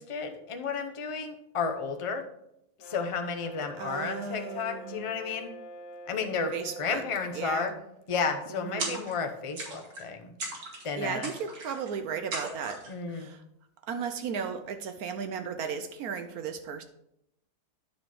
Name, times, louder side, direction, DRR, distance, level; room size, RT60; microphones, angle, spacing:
voice 1, 0.0-2.2 2.8-5.5 6.1-6.5 6.8-7.7 8.1-10.3 10.8-11.3 12.9-13.3, left 5 dB, 50° left, 6 dB, 0.3 m, -32 dB
Brass instrument, 2.8-7.7, equal, 70° left, 1.2 m, -45 dB
voice 2, 3.8-5.0 6.5-7.0 7.3-7.8 8.5-9.0 11.0-13.4 13.9-16.8, right 6 dB, 70° right, 8 dB, 1.0 m, -35 dB
sound 1, 8.8-9.3 9.6-10.1 10.4-10.9 11.2-11.9 12.3-12.9, right 2 dB, 90° right, 2.3 m, -37 dB
9.7 x 4.2 x 4.8 m, 0.79 s
omnidirectional pair, 1.8 m